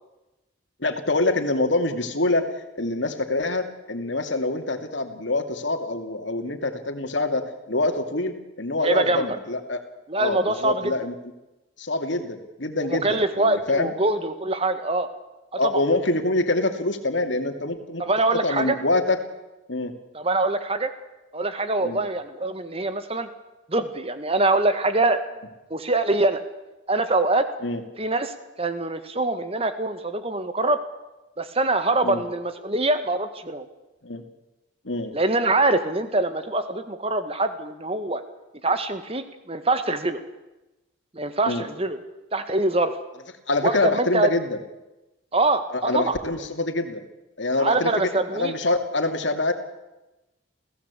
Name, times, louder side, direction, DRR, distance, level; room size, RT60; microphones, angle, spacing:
voice 1, 0.8-2.5 2.8-9.8 10.2-11.1 11.8-13.9 15.6-18.0 18.3-19.2 19.7-19.9 21.8-22.0 27.6-27.8 32.0-32.2 34.0-34.2 34.8-35.2 41.4-41.7 43.5-44.6 45.7-47.0 47.4-49.5, left 2 dB, 65° left, 6 dB, 2.6 m, -25 dB
voice 2, 8.8-9.3 10.1-10.9 12.9-15.1 15.5-15.8 18.0-18.8 20.1-20.9 21.3-23.3 23.7-25.2 25.7-26.4 26.9-27.4 28.0-30.8 31.4-33.7 35.1-38.2 38.6-40.2 41.1-42.0 42.3-42.9 43.6-44.3 45.3-46.2 47.5-48.5, right 2 dB, 30° right, 10 dB, 1.8 m, -24 dB
28.5 x 16.5 x 8.4 m, 1.0 s
head